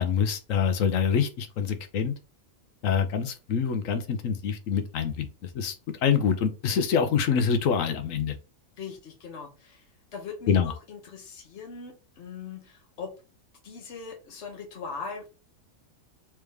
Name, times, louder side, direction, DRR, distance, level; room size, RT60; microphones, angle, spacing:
voice 1, 0.0-2.1 2.8-5.3 5.5-5.7 6.0-8.3 10.5-10.7, left 7 dB, 75° left, 8 dB, 1.1 m, -25 dB
voice 2, 8.8-9.8 10.1-13.1 13.6-15.3, left 5 dB, 55° left, 1 dB, 1.3 m, -40 dB
3.5 x 3.2 x 3.3 m, 0.32 s
omnidirectional pair, 1.4 m